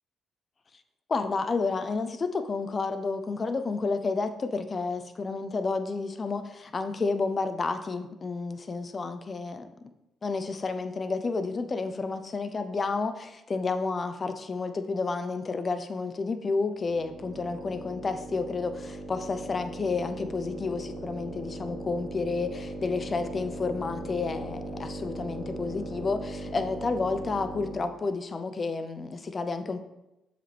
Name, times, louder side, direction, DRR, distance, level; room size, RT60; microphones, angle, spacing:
voice 1, 1.1-9.7 10.2-29.8, left 4 dB, 35° left, 10 dB, 0.6 m, -30 dB
sound 1, 16.8-28.0, right 1 dB, 35° right, 1.2 m, -39 dB
7.1 x 5.1 x 3.4 m, 0.93 s
cardioid pair, 90°, 0 cm